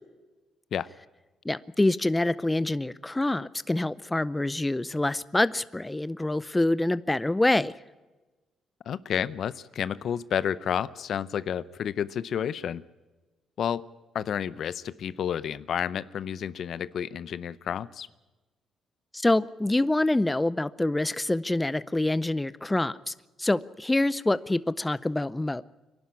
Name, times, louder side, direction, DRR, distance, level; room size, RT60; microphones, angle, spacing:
voice 1, 1.4-7.7 19.1-23.1 23.4-25.6, left 2 dB, 15° left, 17 dB, 0.6 m, -26 dB
voice 2, 8.9-12.8 13.6-13.9 14.1-18.1, left 8 dB, 65° left, 18 dB, 0.6 m, -30 dB
25.0 x 11.5 x 9.6 m, 1.2 s
cardioid pair, 90°, 0 cm